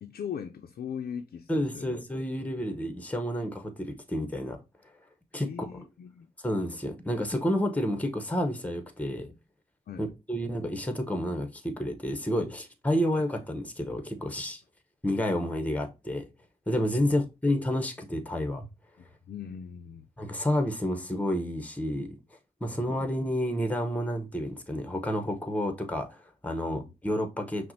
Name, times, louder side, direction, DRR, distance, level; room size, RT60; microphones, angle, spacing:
voice 1, 0.0-2.0 5.4-6.3 9.9-10.1 17.0-17.2 19.0-20.1 22.7-22.9, left 8 dB, 70° left, 0.4 m, -40 dB
voice 2, 1.5-4.6 5.3-5.8 6.4-9.3 10.0-14.6 15.0-16.3 16.7-18.7 20.2-22.2 22.6-27.7, equal, 10° left, 0.8 m, -30 dB
5.7 x 2.1 x 2.7 m
cardioid pair, 40°, 16 cm